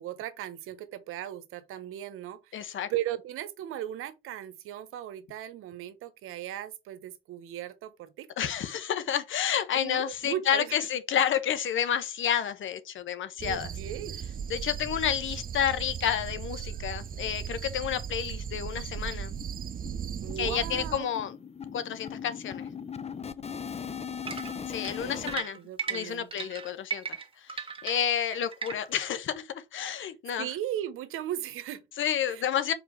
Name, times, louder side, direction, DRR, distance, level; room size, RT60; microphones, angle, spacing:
voice 1, 0.0-8.5 9.7-10.7 13.4-14.1 20.2-21.1 23.9-24.5 25.0-26.5 30.4-31.8 32.3-32.5, right 12 dB, 85° right, 1.0 m, -37 dB
voice 2, 2.5-2.9 8.4-13.7 14.5-19.3 20.4-21.3 21.7-22.7 24.7-25.6 25.9-30.5 32.0-32.7, left 9 dB, 65° left, 1.0 m, -30 dB
sound 1, 13.4-21.0, right 8 dB, 40° right, 0.6 m, -37 dB
sound 2, 18.1-18.2 18.5-18.6 19.0-19.1 19.4-25.4, left 7 dB, 30° left, 0.7 m, -39 dB
sound 3, 24.3-29.0, right 6 dB, 25° right, 1.5 m, -36 dB
5.0 x 4.4 x 4.6 m
cardioid pair, 80°, 21 cm